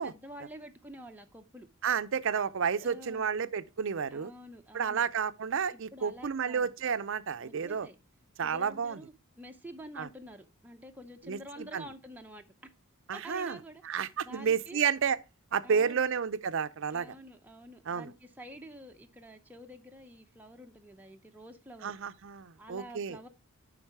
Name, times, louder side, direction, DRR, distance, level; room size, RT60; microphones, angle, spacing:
voice 1, 0.0-1.7 2.7-3.4 4.1-5.0 5.7-6.7 7.4-8.0 8.4-12.5 13.1-14.8 15.6-16.1 16.9-21.9 22.6-23.3, equal, 10° right, 0.5 m, -48 dB
voice 2, 1.8-4.3 4.7-7.9 8.4-9.0 10.0-10.1 11.3-11.4 11.7-11.8 13.1-13.6 13.8-15.2 15.5-17.1 17.9-18.1 21.8-23.2, right 6 dB, 60° right, 0.5 m, -31 dB
10.0 x 3.9 x 4.7 m
head